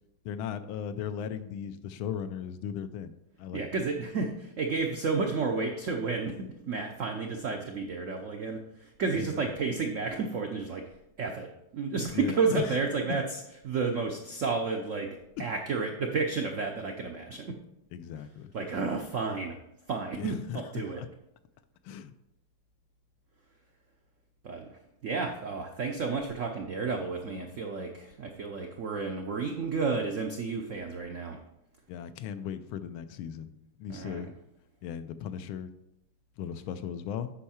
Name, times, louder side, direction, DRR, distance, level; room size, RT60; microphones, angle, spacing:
voice 1, 0.2-3.1 3.4-3.6 9.1-9.4 12.1-12.8 15.4-15.5 17.9-18.5 20.2-20.7 21.0-21.1 21.8-22.1 31.9-33.5 33.8-34.3 34.8-35.7 36.4-37.3, left 8 dB, 85° left, 11 dB, 1.4 m, -37 dB
voice 2, 3.5-10.8 11.2-11.5 11.7-15.1 15.4-17.5 18.5-19.6 19.9-21.0 24.4-24.7 25.0-31.4 33.9-34.3, right 4 dB, 80° right, 3 dB, 0.7 m, -31 dB
8.3 x 5.5 x 4.2 m, 0.86 s
omnidirectional pair, 2.2 m